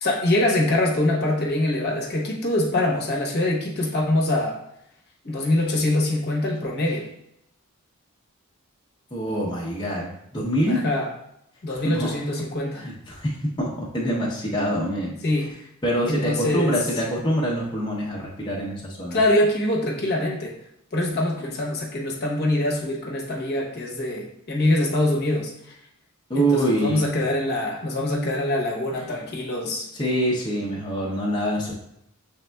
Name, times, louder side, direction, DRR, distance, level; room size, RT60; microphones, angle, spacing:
voice 1, 0.0-4.6 5.2-7.1 10.7-11.1 11.6-12.8 15.2-15.5 16.1-16.7 19.1-20.6 20.9-25.7 26.3-29.9, left 1 dB, 50° left, -2 dB, 0.9 m, -24 dB
voice 2, 9.1-10.8 11.7-12.1 12.7-15.1 15.8-19.2 26.3-27.0 29.9-31.7, equal, 20° left, -5 dB, 0.8 m, -25 dB
6.4 x 3.5 x 2.3 m, 0.78 s
head